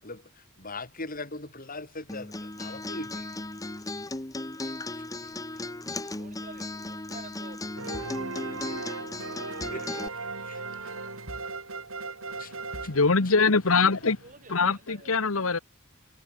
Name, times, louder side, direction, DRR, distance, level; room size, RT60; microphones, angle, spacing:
voice 1, 0.0-3.4 4.6-5.0 7.9-8.1 9.7-10.1 10.4-10.9 12.4-12.5 12.8-12.9, left 2 dB, 45° left, 6.9 m, -41 dB
Acoustic guitar, 2.1-10.1, left 2 dB, 15° left, 1.1 m, -36 dB
voice 2, 5.9-7.6 14.2-15.5, right 4 dB, 40° right, 2.6 m, -50 dB
sound 1, 7.8-13.7, right 3 dB, 85° right, 5.9 m, -37 dB
voice 3, 12.9-14.2 14.5-15.6, left 4 dB, 90° left, 1.4 m, -23 dB
head